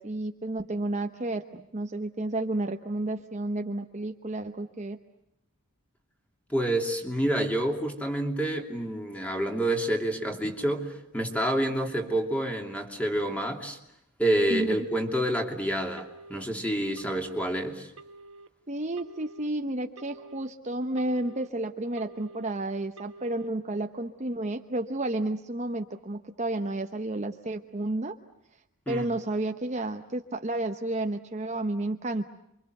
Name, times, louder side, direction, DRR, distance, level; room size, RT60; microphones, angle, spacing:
voice 1, 0.0-5.0 10.4-10.5 14.5-14.7 18.7-28.2 28.9-32.3, right 2 dB, 35° right, 5 dB, 1.0 m, -31 dB
voice 2, 6.5-13.8 14.2-17.9 28.9-29.1, right 1 dB, 5° left, 3 dB, 2.9 m, -28 dB
Telephone, 16.0-16.5 17.0-17.5 18.0-18.5 19.0-19.5 20.0-20.5 21.0-21.5 22.0-22.5 23.0-23.5, right 2 dB, 70° right, 1.3 m, -48 dB
28.5 x 24.5 x 7.9 m, 0.80 s
head